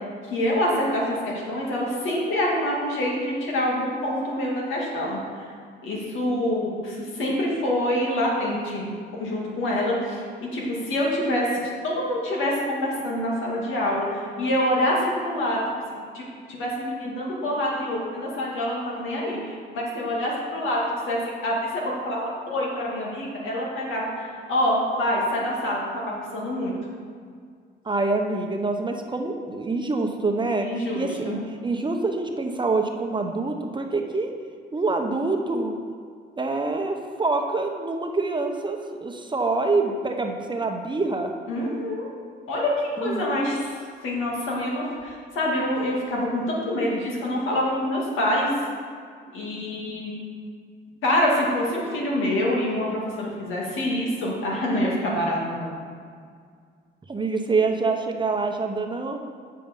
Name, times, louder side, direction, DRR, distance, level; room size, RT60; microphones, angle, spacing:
voice 1, 0.3-5.2 5.8-8.9 9.2-15.6 15.9-16.2 16.5-20.8 21.1-26.7 30.6-31.4 41.5-42.1 42.5-42.7 43.0-43.8 44.0-48.5 49.3-50.1 51.0-55.7, left 1 dB, 85° left, -3 dB, 2.3 m, -26 dB
voice 2, 27.8-30.7 30.9-34.3 34.7-35.7 36.4-41.3 43.0-43.3 57.1-59.2, right 3 dB, 25° right, 4 dB, 0.8 m, -26 dB
7.6 x 7.2 x 5.4 m, 2.1 s
cardioid pair, 90°, 20 cm